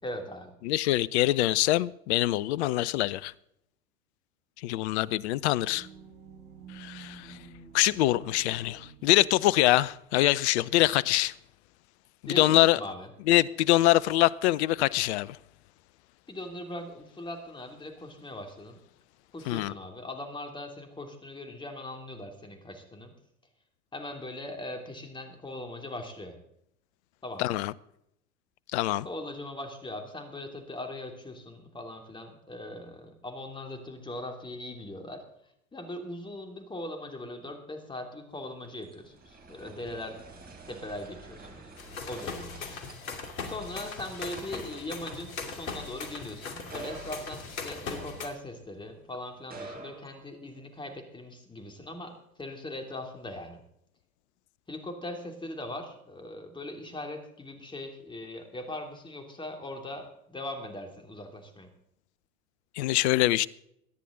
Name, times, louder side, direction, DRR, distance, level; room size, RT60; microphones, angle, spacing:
voice 1, 0.0-0.6 12.3-13.1 16.3-18.8 19.3-23.1 23.9-26.3 27.2-27.5 29.0-35.2 35.7-41.7 42.1-53.6 54.7-61.7, left 1 dB, 10° left, 3.0 m, -40 dB
voice 2, 0.6-3.3 4.6-5.9 6.7-7.4 7.7-11.3 12.4-12.8 13.3-15.4 19.5-19.7 27.4-27.7 28.7-29.1 62.8-63.5, left 16 dB, 50° left, 0.7 m, -24 dB
sound 1, 5.0-9.8, right 5 dB, 40° right, 3.5 m, -50 dB
sound 2, 38.4-48.8 49.3-50.9, right 3 dB, 20° right, 3.8 m, -49 dB
sound 3, 41.8-48.3, left 4 dB, 70° left, 2.7 m, -39 dB
23.0 x 10.0 x 3.9 m
figure-of-eight pair, 90°, 43 cm